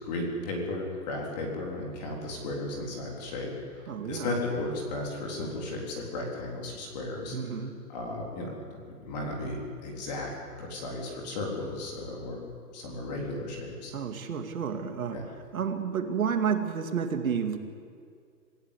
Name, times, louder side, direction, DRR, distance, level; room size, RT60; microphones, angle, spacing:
voice 1, 0.0-3.5 4.0-7.4 7.6-8.8 9.0-10.3 10.6-12.4 12.7-13.9 15.1-15.2, left 2 dB, 25° left, -1 dB, 3.8 m, -35 dB
voice 2, 3.9-4.3 7.3-7.7 13.9-15.2 15.5-17.6, right 7 dB, 60° right, 5 dB, 2.3 m, -30 dB
27.5 x 15.5 x 8.4 m, 2.2 s
hypercardioid pair, 175°, 47 cm